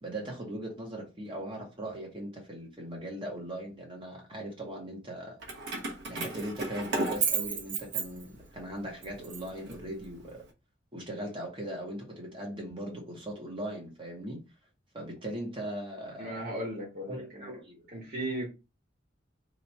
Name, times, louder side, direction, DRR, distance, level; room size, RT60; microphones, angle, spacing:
voice 1, 0.0-5.4 6.0-10.4 10.9-14.4 14.9-16.4 17.1-17.9, right 1 dB, 25° right, 0.9 m, -39 dB
Keys jangling, 5.4-8.6 9.0-10.3, right 4 dB, 60° right, 0.9 m, -33 dB
voice 2, 16.2-17.5 17.9-18.5, right 1 dB, 45° right, 1.4 m, -36 dB
2.9 x 2.3 x 4.0 m
head